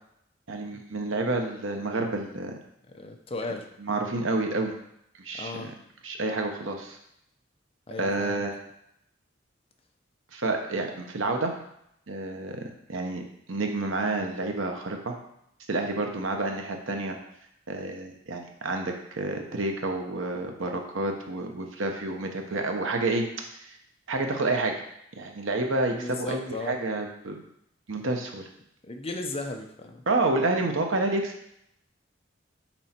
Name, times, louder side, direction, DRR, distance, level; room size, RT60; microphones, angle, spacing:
voice 1, 0.5-2.5 3.8-4.7 5.2-5.7 6.0-7.0 8.0-8.5 10.3-11.5 12.1-13.2 13.5-15.1 15.7-17.2 17.7-23.2 23.5-23.7 24.1-24.7 25.2-27.4 27.9-28.5 30.1-31.3, right 2 dB, 80° right, 3 dB, 1.0 m, -29 dB
voice 2, 2.9-3.7 5.4-5.7 7.9-8.4 25.9-26.8 28.8-30.0, left 2 dB, 30° left, 4 dB, 0.7 m, -36 dB
6.2 x 4.3 x 4.4 m, 0.76 s
head